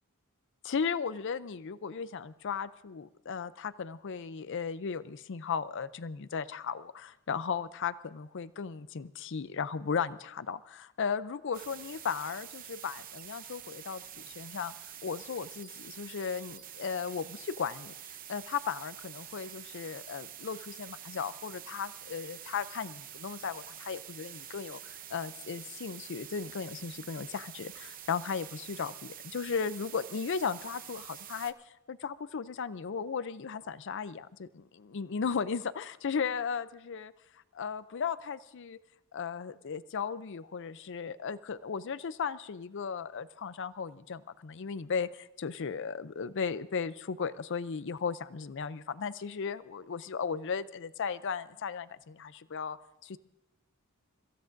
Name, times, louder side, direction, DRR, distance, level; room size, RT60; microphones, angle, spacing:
voice 1, 0.6-14.7 15.0-17.9 18.3-31.5 31.9-38.8 39.1-52.8 53.0-53.2, left 6 dB, 55° left, 15 dB, 0.5 m, -36 dB
sound 1, 11.5-31.5, right 10 dB, 40° right, 0.7 m, -47 dB
29.5 x 15.5 x 2.6 m, 0.89 s
head